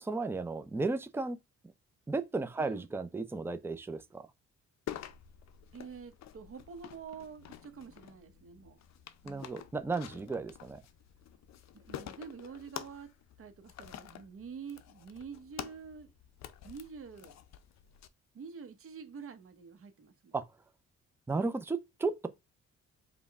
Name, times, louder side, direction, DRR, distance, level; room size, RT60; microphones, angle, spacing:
voice 1, 0.0-1.4 2.1-4.3 9.2-10.8 20.3-20.4 21.3-22.3, right 3 dB, 10° right, 0.5 m, -34 dB
voice 2, 2.6-2.9 5.7-8.8 9.2-9.6 11.7-13.1 13.4-16.1 16.6-17.4 18.3-20.3, right 6 dB, 45° right, 1.0 m, -47 dB
sound 1, 4.9-18.1, left 11 dB, 65° left, 0.6 m, -48 dB
5.1 x 2.2 x 3.5 m
cardioid pair, 90°, 30 cm